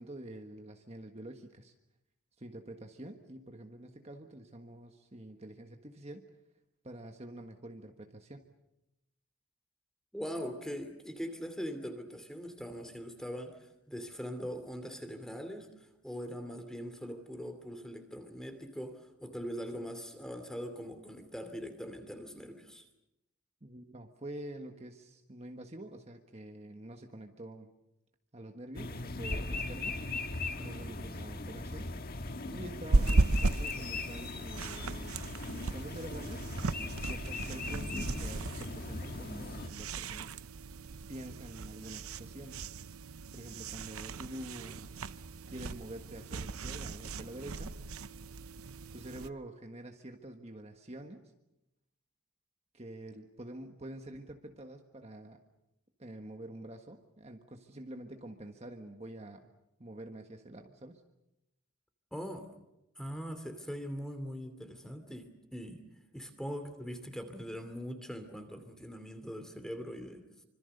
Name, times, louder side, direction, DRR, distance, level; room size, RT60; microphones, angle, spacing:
voice 1, 0.0-1.7 2.4-6.3 6.8-8.5 23.6-27.7 28.3-30.0 30.5-35.1 35.4-36.5 36.9-40.7 41.1-42.7 43.3-44.9 45.5-47.7 48.9-51.3 52.7-55.4 56.0-59.5 59.8-61.0, right 1 dB, 30° right, 4 dB, 1.5 m, -47 dB
voice 2, 10.1-22.8 30.6-31.0 62.1-62.5 63.0-65.8 66.1-70.2, equal, 5° left, 8 dB, 2.7 m, -42 dB
sound 1, 28.7-39.7, left 2 dB, 45° left, 1.6 m, -39 dB
sound 2, 32.9-49.3, right 3 dB, 90° right, 0.8 m, -36 dB
26.0 x 25.5 x 6.8 m, 0.90 s
head